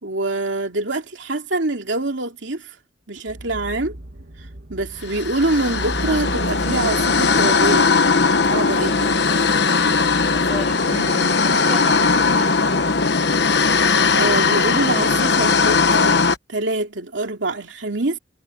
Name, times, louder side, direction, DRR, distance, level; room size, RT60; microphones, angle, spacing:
voice 1, 0.0-2.7 3.1-4.0 4.7-7.9 8.5-9.2 10.9-11.4 14.1-18.2, right 2 dB, 80° right, 2.7 m, -25 dB
sound 1, 3.3-16.4, right 1 dB, 60° right, 1.4 m, -37 dB
sound 2, 5.1-16.4, left 4 dB, 60° left, 1.1 m, -18 dB
voice 2, 8.8-9.7 10.3-11.1 11.4-12.7, equal, ahead, 6.6 m, -37 dB
head